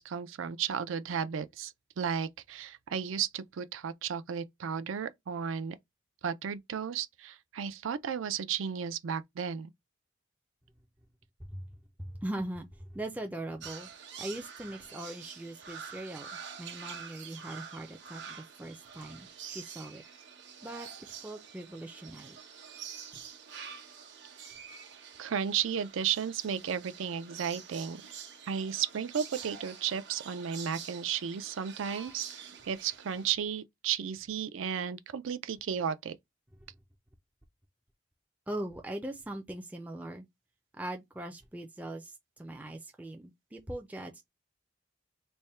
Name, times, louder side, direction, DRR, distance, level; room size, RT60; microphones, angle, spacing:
voice 1, 0.0-5.8 6.2-9.7 25.2-28.0 28.5-36.2, right 7 dB, 75° right, 0.4 m, -34 dB
voice 2, 12.0-13.9 14.2-20.0 20.6-20.9 21.2-22.4 38.5-40.3 40.7-44.2, right 1 dB, 10° right, 0.4 m, -40 dB
sound 1, 13.6-33.3, right 7 dB, 60° right, 0.9 m, -47 dB
3.3 x 2.1 x 4.2 m
head